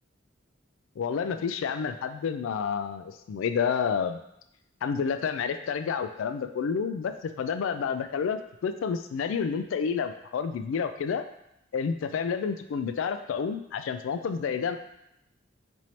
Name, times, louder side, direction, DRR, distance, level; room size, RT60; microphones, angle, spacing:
voice 1, 1.0-4.2 4.8-11.2 11.7-14.8, left 6 dB, 80° left, 9 dB, 0.3 m, -29 dB
3.1 x 2.6 x 4.3 m, 0.80 s
head